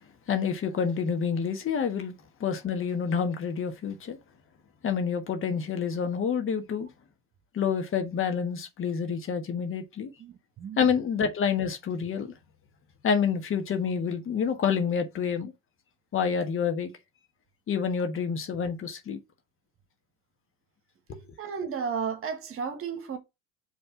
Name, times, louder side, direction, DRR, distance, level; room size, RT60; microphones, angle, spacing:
voice 1, 0.3-2.1 2.4-4.2 4.8-6.9 7.5-10.1 10.8-12.3 13.0-15.5 16.1-16.9 17.7-19.2 21.1-21.2, left 6 dB, 40° left, 1.4 m, -28 dB
voice 2, 10.2-10.9 21.4-23.2, right 6 dB, 45° right, 1.5 m, -33 dB
5.5 x 3.3 x 5.7 m
hypercardioid pair, 80°, 32 cm